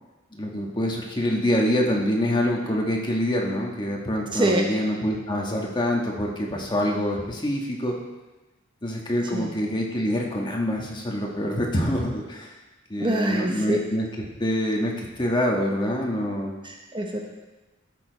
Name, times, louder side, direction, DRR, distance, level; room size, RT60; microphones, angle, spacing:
voice 1, 0.3-8.0 8.8-12.5 12.9-14.1 14.4-16.6, equal, 25° left, -1 dB, 1.4 m, -25 dB
voice 2, 4.3-4.7 9.3-9.6 13.0-13.8 16.6-17.2, right 1 dB, 25° right, 2 dB, 0.8 m, -25 dB
13.0 x 6.9 x 4.0 m, 1.2 s
head